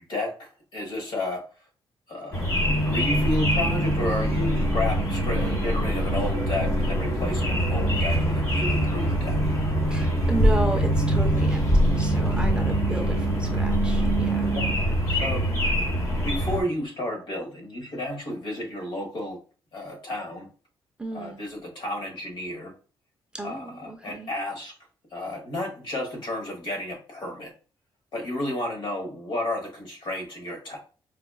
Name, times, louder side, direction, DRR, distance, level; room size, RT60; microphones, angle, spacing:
voice 1, 0.0-1.4 2.1-9.4 14.5-15.5 16.2-19.4 19.7-20.5 21.1-22.7 23.4-24.7 25.1-27.5 28.1-30.8, left 1 dB, 60° left, 1 dB, 1.2 m, -32 dB
sound 1, 2.3-16.6, equal, 30° left, 1.1 m, -24 dB
sound 2, 2.6-14.8, right 2 dB, 45° right, 0.7 m, -29 dB
voice 2, 9.9-14.6 21.0-21.4 23.3-24.3, right 1 dB, 10° right, 3 dB, 0.4 m, -33 dB
4.8 x 2.4 x 2.2 m, 0.37 s
wide cardioid pair, 160°, 9 cm